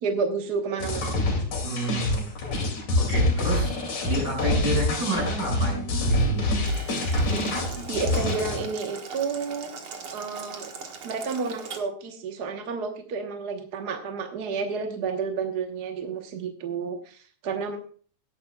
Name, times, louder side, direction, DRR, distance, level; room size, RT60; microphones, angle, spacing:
voice 1, 0.0-1.2 7.3-7.4 7.9-9.7 10.1-10.7 11.0-17.8, right 5 dB, 70° right, 4 dB, 0.9 m, -31 dB
sound 1, 0.8-8.6, left 2 dB, 60° left, 3.8 m, -26 dB
voice 2, 1.6-2.3 3.0-3.7 4.0-6.5, right 2 dB, 30° right, -2 dB, 6.4 m, -29 dB
Boiling, 6.6-11.8, right 5 dB, 50° right, 2.0 m, -40 dB
18.0 x 10.0 x 2.3 m, 0.43 s
omnidirectional pair, 3.6 m